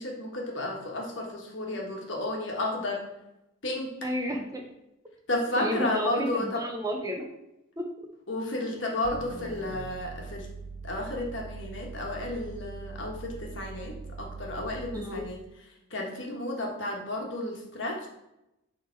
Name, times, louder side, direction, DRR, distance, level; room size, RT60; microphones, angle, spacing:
voice 1, 0.0-3.1 3.6-3.9 5.3-6.6 8.3-10.5 10.8-15.4 15.9-18.1, left 1 dB, 65° left, 0 dB, 1.4 m, -32 dB
voice 2, 4.0-4.6 5.6-7.3 7.8-7.9 14.9-15.2, equal, 15° right, 2 dB, 0.7 m, -31 dB
sound 1, 9.0-15.2, right 4 dB, 40° right, 0.9 m, -42 dB
7.1 x 3.7 x 4.5 m, 0.89 s
head